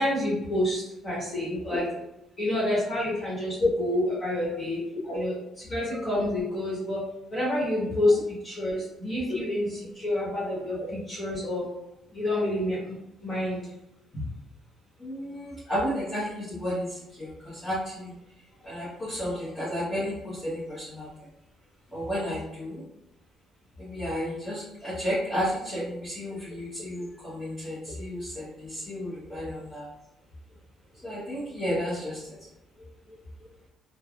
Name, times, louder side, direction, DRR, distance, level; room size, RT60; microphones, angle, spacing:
voice 1, 0.0-1.9 2.4-4.8 5.1-5.4 5.7-7.0 7.3-8.2 8.4-9.7 10.0-10.8 11.1-11.6 12.1-12.8 13.2-13.6, left 1 dB, 35° left, -8 dB, 1.3 m, -28 dB
voice 2, 15.0-16.9 17.2-18.1 18.6-21.1 21.9-22.8 23.8-29.8 31.0-32.2, left 1 dB, 10° left, -10 dB, 1.1 m, -32 dB
3.3 x 2.2 x 2.4 m, 0.88 s
cardioid pair, 90°, 0 cm